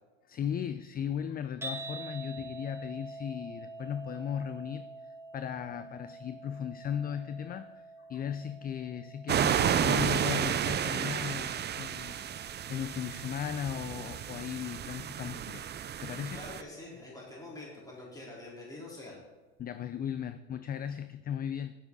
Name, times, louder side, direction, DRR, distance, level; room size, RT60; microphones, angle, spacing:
voice 1, 0.3-7.8 8.1-15.7 16.0-16.4 19.6-21.7, left 8 dB, 25° left, 12 dB, 0.4 m, -37 dB
sound 1, 1.6-17.8, right 2 dB, 5° right, 2.2 m, -48 dB
sound 2, 9.3-16.6, right 9 dB, 25° right, 0.5 m, -32 dB
voice 2, 16.3-19.2, left 2 dB, 10° left, -5 dB, 3.8 m, -45 dB
9.2 x 7.9 x 5.3 m, 1.3 s
hypercardioid pair, 75°, 39 cm